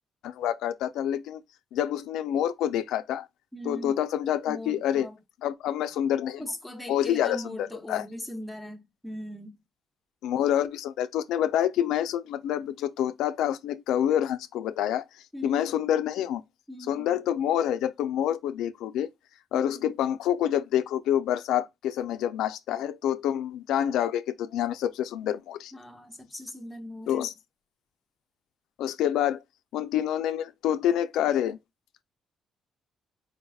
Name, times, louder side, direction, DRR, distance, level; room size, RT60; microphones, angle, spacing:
voice 1, 0.2-1.4 1.7-3.3 3.7-5.1 5.4-6.4 6.9-7.5 7.9-8.1 10.2-15.0 15.4-16.4 16.9-19.1 19.5-25.7 27.1-27.3 28.8-29.4 29.7-31.6, left 10 dB, 90° left, 0.4 m, -27 dB
voice 2, 3.5-3.9 4.5-5.2 6.4-9.6 15.3-15.7 16.7-17.2 19.5-20.0 25.7-27.3, left 1 dB, 5° left, 0.9 m, -40 dB
4.6 x 2.3 x 3.4 m
cardioid pair, 110°, 0 cm